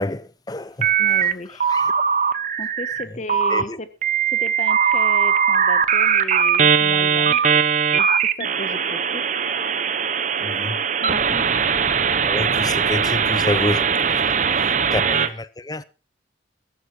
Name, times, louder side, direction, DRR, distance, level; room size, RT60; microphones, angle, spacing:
voice 1, 0.0-0.9 1.5-1.9 3.5-3.8 10.4-10.8 12.2-15.8, left 2 dB, 20° left, 0.7 m, -28 dB
sound 1, 0.8-1.3 1.6-3.0 3.3-3.6 4.0-15.3, right 7 dB, 40° right, 0.9 m, -20 dB
voice 2, 1.0-1.7 2.3-3.9 4.3-7.6 7.9-9.3 11.0-11.4 14.6-14.7, left 1 dB, 40° left, 1.3 m, -35 dB
14.5 x 12.0 x 4.2 m
head